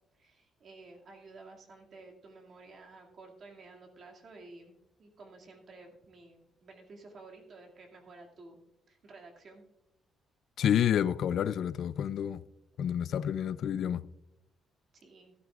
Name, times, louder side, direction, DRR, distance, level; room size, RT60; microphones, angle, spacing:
voice 1, 0.1-4.7 5.0-8.6 8.9-9.6 14.9-15.3, right 3 dB, 50° right, 2.4 m, -52 dB
voice 2, 10.6-12.4 12.8-14.1, left 9 dB, 65° left, 0.4 m, -29 dB
15.0 x 12.5 x 2.5 m
cardioid pair, 135°, 0 cm